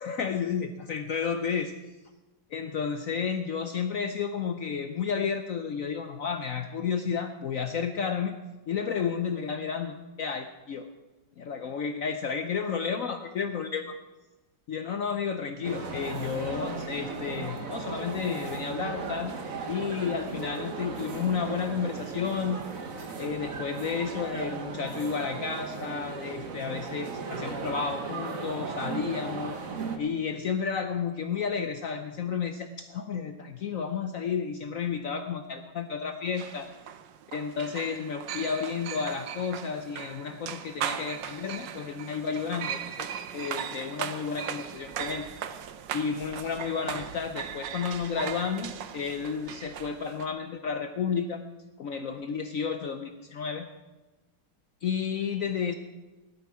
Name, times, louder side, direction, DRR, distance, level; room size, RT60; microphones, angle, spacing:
voice 1, 0.0-1.7 2.5-8.4 8.7-10.9 11.4-14.0 14.7-19.3 19.7-22.6 23.2-29.6 30.0-36.7 37.3-43.1 43.3-45.2 45.9-51.4 51.8-53.7 54.8-55.7, left 6 dB, 60° left, 8 dB, 0.9 m, -32 dB
sound 1, 15.6-30.0, right 4 dB, 50° right, 1.5 m, -36 dB
sound 2, 36.4-50.3, right 9 dB, 75° right, 1.5 m, -38 dB
16.5 x 12.0 x 4.7 m, 1.1 s
omnidirectional pair, 2.0 m